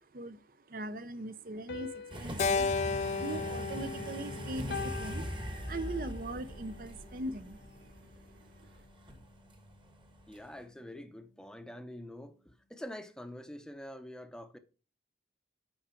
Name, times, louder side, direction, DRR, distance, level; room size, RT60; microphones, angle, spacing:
voice 1, 0.0-7.9 8.4-8.7, right 2 dB, 50° right, 0.5 m, -41 dB
sound 1, 1.7-4.1 4.7-6.2, left 4 dB, 75° left, 1.0 m, -44 dB
sound 2, 2.1-10.6, equal, 25° right, 1.2 m, -42 dB
Keyboard (musical), 2.4-6.8, left 4 dB, 40° left, 0.3 m, -35 dB
voice 2, 10.3-14.6, left 1 dB, 5° left, 0.6 m, -46 dB
9.0 x 5.0 x 4.3 m
head